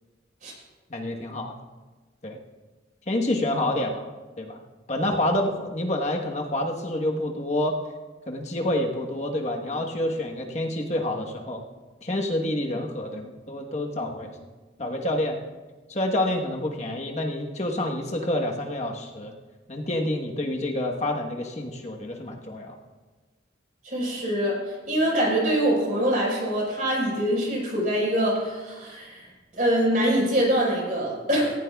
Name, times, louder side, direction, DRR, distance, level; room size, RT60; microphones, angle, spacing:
voice 1, 0.9-1.5 2.2-2.4 3.1-4.0 4.4-4.6 4.9-7.7 8.3-11.6 12.0-14.3 14.8-15.4 15.9-19.3 19.7-22.8, left 1 dB, 40° left, 1 dB, 1.2 m, -28 dB
voice 2, 23.8-24.6 24.9-29.2 29.5-31.5, equal, 45° right, -3 dB, 4.8 m, -24 dB
18.0 x 15.0 x 2.3 m, 1.3 s
head